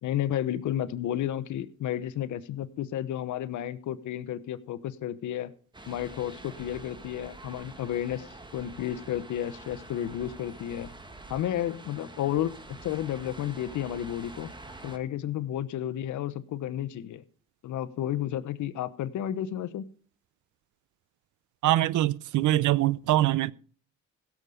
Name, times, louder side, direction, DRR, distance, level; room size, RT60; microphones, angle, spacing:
voice 1, 0.0-5.5 5.9-8.3 8.5-10.9 11.3-14.5 14.8-17.2 17.6-19.9, left 11 dB, 75° left, 1.0 m, -32 dB
sound 1, 5.7-15.0, right 2 dB, 15° right, 1.7 m, -46 dB
voice 2, 21.6-23.5, right 15 dB, 75° right, 0.7 m, -23 dB
16.5 x 7.2 x 4.9 m
cardioid pair, 90°, 30 cm